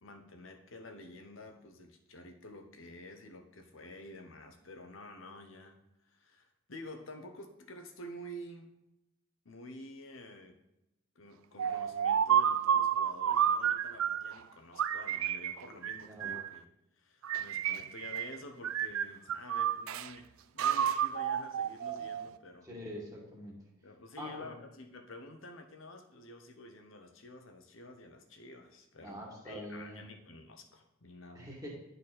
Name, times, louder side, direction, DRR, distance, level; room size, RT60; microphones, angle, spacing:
voice 1, 0.0-5.8 6.1-8.7 9.4-10.6 11.1-16.7 17.0-22.7 23.8-31.5, left 1 dB, 75° left, 6 dB, 0.9 m, -50 dB
sound 1, 11.6-14.3 14.8-16.6 17.2-18.4 18.6-20.1 20.6-22.4, right 9 dB, 90° right, 0.4 m, -31 dB
voice 2, 22.6-23.6 24.2-24.6 29.0-30.0 31.3-31.7, equal, 15° right, -4 dB, 1.9 m, -44 dB
10.5 x 4.1 x 4.2 m, 0.90 s
head